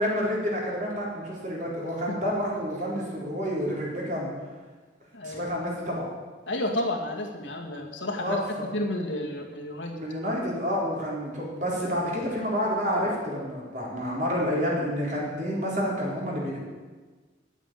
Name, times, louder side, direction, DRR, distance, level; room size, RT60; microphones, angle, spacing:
voice 1, 0.0-4.3 5.2-6.1 8.2-8.7 9.9-16.6, equal, 40° right, -4 dB, 4.0 m, -29 dB
voice 2, 5.1-5.5 6.5-9.9, left 1 dB, 90° left, 1 dB, 2.1 m, -31 dB
10.5 x 8.3 x 9.1 m, 1.4 s
head